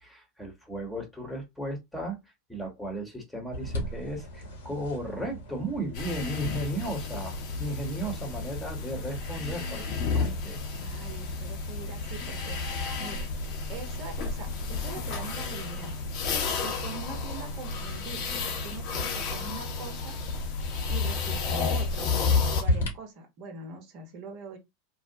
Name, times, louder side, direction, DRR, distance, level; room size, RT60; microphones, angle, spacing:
voice 1, 0.0-2.2 2.5-10.6, right 1 dB, 5° left, 1.1 m, -35 dB
sound 1, 3.5-22.9, left 1 dB, 75° left, 1.1 m, -39 dB
sound 2, 5.9-22.6, left 4 dB, 55° left, 0.8 m, -31 dB
voice 2, 10.8-12.6 13.0-13.3 13.7-16.1 16.6-20.2 20.7-24.6, right 4 dB, 50° right, 0.9 m, -43 dB
2.6 x 2.1 x 2.7 m
hypercardioid pair, 90°, 0 cm